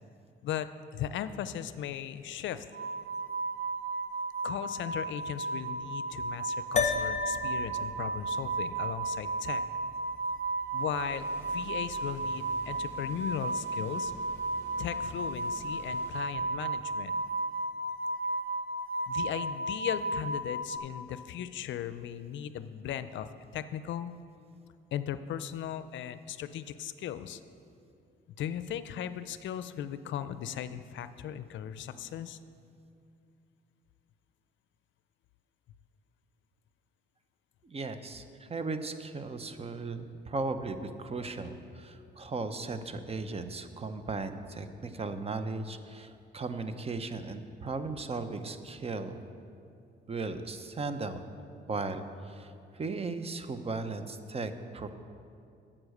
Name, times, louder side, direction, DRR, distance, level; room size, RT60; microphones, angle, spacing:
voice 1, 0.4-2.7 4.4-9.6 10.7-14.1 14.8-17.2 19.1-24.1 24.9-27.4 28.4-32.4, left 10 dB, 70° left, 13 dB, 0.5 m, -37 dB
sound 1, 2.7-20.8, right 2 dB, 80° right, 0.9 m, -34 dB
sound 2, 6.8-11.3, left 6 dB, 35° left, 0.9 m, -36 dB
sound 3, 10.9-16.2, left 1 dB, 15° left, 3.0 m, -50 dB
voice 2, 37.6-49.2 50.1-51.2 51.7-54.9, right 3 dB, 30° right, 10 dB, 0.7 m, -37 dB
9.7 x 7.4 x 6.5 m, 2.5 s
cardioid pair, 90°, 20 cm